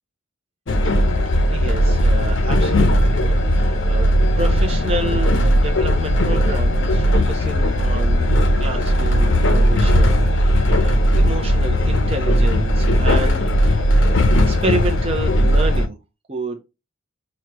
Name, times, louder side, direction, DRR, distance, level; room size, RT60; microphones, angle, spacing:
Train, 0.7-15.9, equal, 65° left, 0.6 m, -17 dB
voice 1, 1.3-4.1 4.4-14.2 14.5-16.0 16.3-16.6, right 2 dB, 30° right, 0.6 m, -30 dB
6.2 x 2.3 x 3.0 m
head